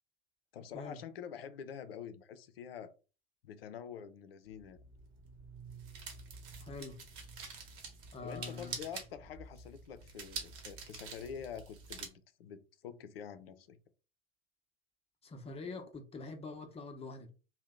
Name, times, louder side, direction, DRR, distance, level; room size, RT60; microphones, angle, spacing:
voice 1, 0.5-2.9 3.4-4.8 8.2-13.8, left 8 dB, 70° left, 0.5 m, -46 dB
sound 1, 4.5-12.1, right 5 dB, 45° right, 1.0 m, -47 dB
voice 2, 6.6-7.0 8.1-8.7 15.2-17.3, left 3 dB, 20° left, 0.7 m, -44 dB
2.7 x 2.1 x 3.5 m
figure-of-eight pair, 75°, 30 cm